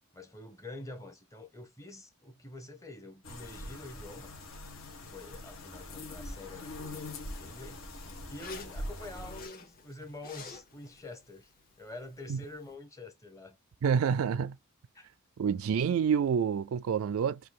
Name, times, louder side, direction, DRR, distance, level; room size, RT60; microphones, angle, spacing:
voice 1, 0.1-4.3 5.0-7.8 8.3-11.5 11.8-13.6 13.9-14.1 14.9-15.1, left 2 dB, 15° left, 0.9 m, -46 dB
sound 1, 3.2-9.5, left 1 dB, 65° left, 1.4 m, -43 dB
Zipper (clothing), 6.1-12.7, left 5 dB, 45° left, 1.2 m, -53 dB
voice 2, 13.8-14.6 15.4-17.4, right 7 dB, 75° right, 0.3 m, -28 dB
3.7 x 2.8 x 4.1 m
head